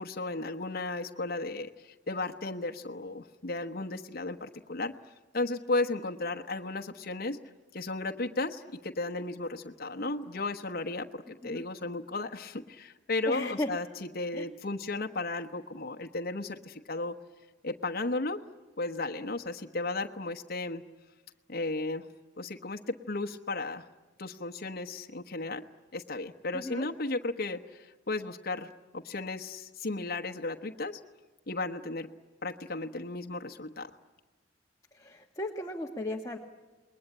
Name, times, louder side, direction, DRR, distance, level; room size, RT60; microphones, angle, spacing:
voice 1, 0.0-4.9 5.3-7.4 7.7-13.9 14.1-17.2 17.6-18.4 18.8-20.8 21.5-22.1 22.4-23.9 24.2-25.7 25.9-31.0 31.5-32.1 32.4-33.9, left 2 dB, 55° left, 5 dB, 1.1 m, -34 dB
voice 2, 13.3-13.7 14.3-14.5 26.5-26.9 34.9-36.4, left 1 dB, 15° left, 1 dB, 1.4 m, -35 dB
28.0 x 21.0 x 8.9 m, 1.2 s
head